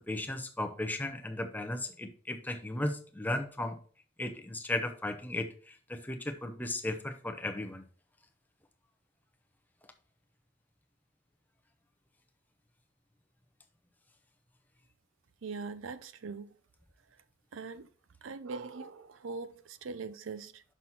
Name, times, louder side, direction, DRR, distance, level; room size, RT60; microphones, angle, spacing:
voice 1, 0.1-3.8 4.2-7.8, left 1 dB, 10° left, 0.7 m, -35 dB
voice 2, 15.4-16.5 17.5-17.9 18.2-20.6, right 4 dB, 85° right, 0.5 m, -41 dB
6.0 x 5.8 x 4.1 m
head